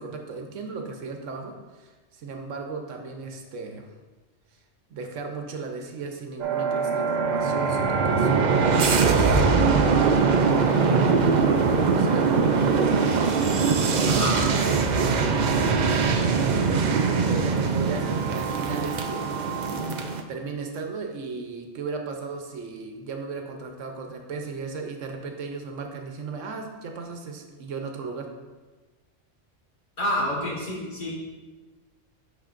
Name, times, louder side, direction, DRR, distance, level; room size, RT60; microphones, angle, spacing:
voice 1, 0.0-3.9 4.9-9.6 10.8-11.3 11.6-12.3 15.2-19.4 20.3-28.3, right 4 dB, 90° right, 3 dB, 1.1 m, -35 dB
sound 1, 6.4-20.2, right 5 dB, 60° right, 0.5 m, -22 dB
voice 2, 14.0-14.4 30.0-31.1, equal, 45° left, -3 dB, 1.3 m, -28 dB
11.0 x 4.0 x 2.5 m, 1.3 s
omnidirectional pair, 1.2 m